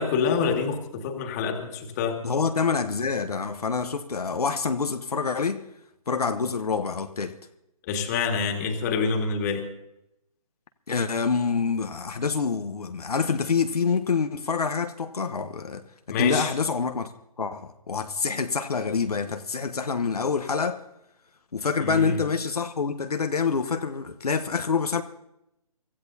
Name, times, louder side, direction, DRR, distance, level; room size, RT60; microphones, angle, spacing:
voice 1, 0.0-2.2 7.9-9.7 16.1-16.5 21.8-22.2, left 5 dB, 25° left, 2.1 m, -26 dB
voice 2, 2.2-5.6 6.1-7.3 10.9-17.1 17.4-20.8 21.5-25.0, left 5 dB, 70° left, 1.1 m, -26 dB
25.0 x 15.0 x 2.8 m
figure-of-eight pair, 145°, 20 cm